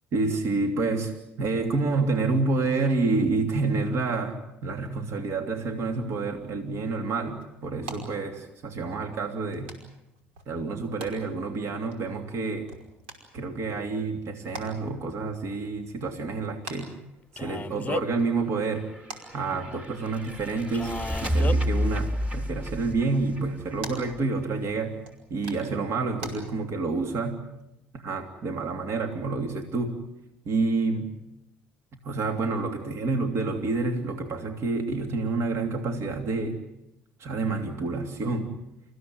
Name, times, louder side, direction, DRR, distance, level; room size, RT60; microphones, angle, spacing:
voice 1, 0.1-9.7 10.5-12.7 13.3-16.9 17.3-18.9 19.3-20.9 21.2-25.0 25.3-27.4 27.9-30.0 30.4-31.1 32.0-36.6 37.2-38.5, right 3 dB, 55° right, 4 dB, 3.0 m, -28 dB
sound 1, 6.5-26.3, right 3 dB, 85° right, 5.3 m, -48 dB
Male speech man speaking, 17.4-18.2 20.7-21.6, left 4 dB, 25° left, 0.8 m, -34 dB
sound 2, 18.7-24.4, equal, 20° right, 3.7 m, -30 dB
29.0 x 16.0 x 9.4 m, 0.90 s
hypercardioid pair, 65°, 6 cm